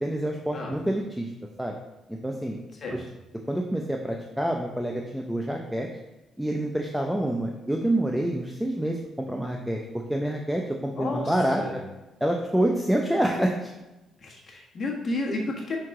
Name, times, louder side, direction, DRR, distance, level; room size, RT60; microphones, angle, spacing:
voice 1, 0.0-1.3 1.6-1.8 2.1-2.6 2.9-3.0 3.5-5.9 6.4-9.8 10.1-11.8 12.2-13.7, right 1 dB, 5° right, 1 dB, 0.6 m, -27 dB
voice 2, 11.0-11.7 14.2-15.8, left 2 dB, 50° left, -1 dB, 1.4 m, -32 dB
5.9 x 4.7 x 3.7 m, 1.0 s
cardioid pair, 90°, 0 cm